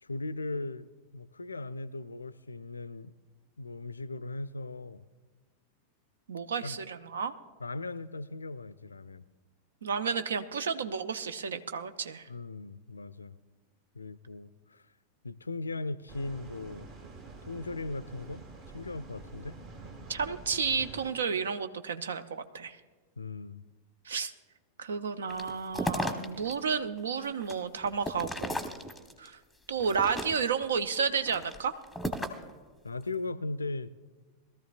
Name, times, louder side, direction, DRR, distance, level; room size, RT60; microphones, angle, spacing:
voice 1, 0.0-3.1 3.6-5.1 6.6-6.8 7.6-9.3 12.3-13.4 13.9-14.8 15.2-16.9 17.5-18.4 18.7-19.6 23.2-23.6 32.8-33.9, left 2 dB, 80° left, 0.4 m, -38 dB
voice 2, 6.3-7.3 9.8-12.3 20.1-22.8 24.0-24.3 24.8-28.7 29.2-29.4 29.7-31.8, right 6 dB, 65° right, 0.6 m, -32 dB
sound 1, 16.1-21.1, right 3 dB, 40° right, 1.9 m, -47 dB
sound 2, 25.3-26.5 27.0-29.3 29.8-30.7 31.2-32.5, equal, ahead, 1.0 m, -35 dB
21.5 x 13.5 x 2.4 m
figure-of-eight pair, 90°, 0 cm